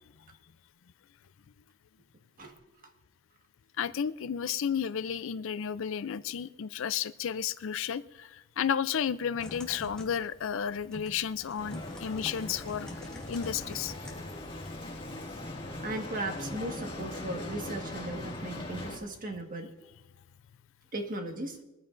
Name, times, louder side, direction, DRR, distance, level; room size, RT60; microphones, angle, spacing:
voice 1, 3.8-13.9, left 8 dB, 65° left, 16 dB, 0.5 m, -32 dB
Typing, 9.3-14.7, left 1 dB, 5° left, 2.3 m, -46 dB
Bicycle, 11.6-19.0, left 1 dB, 25° left, 2.1 m, -40 dB
voice 2, 15.8-19.7 20.9-21.6, right 1 dB, 40° right, 4 dB, 1.6 m, -37 dB
22.0 x 14.5 x 2.6 m, 1.1 s
head